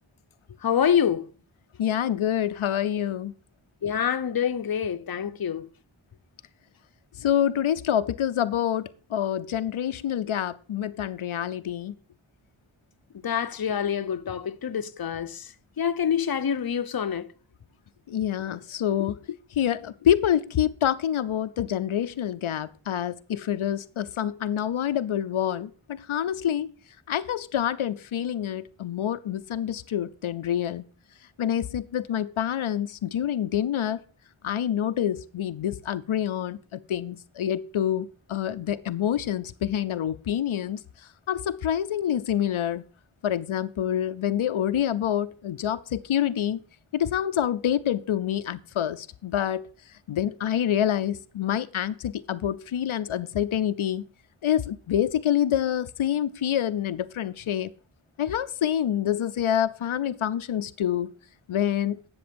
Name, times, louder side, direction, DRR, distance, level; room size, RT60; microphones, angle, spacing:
voice 1, 0.6-1.3 3.8-5.7 13.2-17.3, left 8 dB, 50° left, 0.7 m, -26 dB
voice 2, 1.8-3.3 7.2-11.9 18.1-26.7 27.1-30.8 31.4-34.0 34.4-40.8 41.3-42.8 43.2-46.6 46.9-49.7 50.1-54.0 54.4-57.7 58.2-61.1 61.5-62.0, left 10 dB, 90° left, 0.6 m, -27 dB
10.5 x 7.0 x 5.1 m
wide cardioid pair, 75°, 47 cm